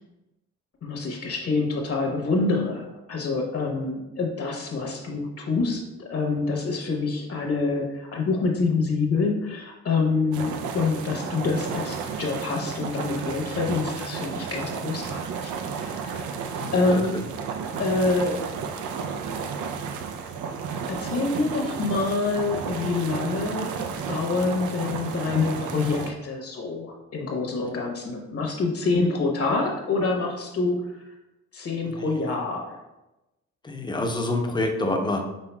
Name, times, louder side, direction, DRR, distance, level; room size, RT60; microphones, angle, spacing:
voice 1, 0.8-16.5 16.7-17.2 17.8-18.4 20.9-23.8 24.1-31.0 31.5-32.8, left 3 dB, 50° left, 1 dB, 1.0 m, -26 dB
sound 1, 10.3-26.1, right 6 dB, 80° right, 0.5 m, -32 dB
voice 2, 16.6-17.2 33.6-35.3, left 2 dB, 15° left, 2 dB, 0.6 m, -27 dB
5.5 x 3.6 x 2.3 m, 0.98 s
cardioid pair, 90°, 30 cm